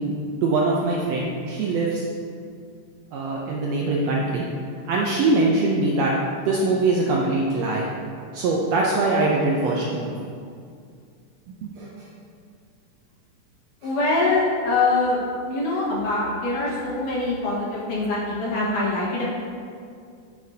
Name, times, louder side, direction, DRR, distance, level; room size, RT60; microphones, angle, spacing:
voice 1, 0.4-2.0 3.1-4.4 4.9-6.1 6.4-7.9 8.3-10.2 11.6-11.9, right 2 dB, 75° right, -3 dB, 1.6 m, -22 dB
voice 2, 13.8-19.3, left 2 dB, 75° left, -5 dB, 3.0 m, -24 dB
9.4 x 7.4 x 2.8 m, 2.3 s
omnidirectional pair, 3.7 m